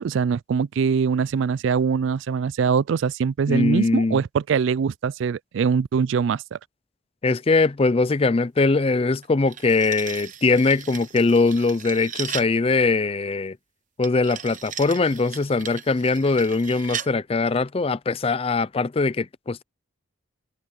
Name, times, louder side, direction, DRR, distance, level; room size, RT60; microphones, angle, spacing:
voice 1, 0.0-6.6, right 6 dB, 65° right, 0.3 m, -23 dB
voice 2, 3.5-4.2 7.2-13.6 14.0-19.6, left 3 dB, 30° left, 0.4 m, -21 dB
sound 1, 9.2-12.6 14.0-17.1, right 9 dB, 40° right, 0.9 m, -37 dB
head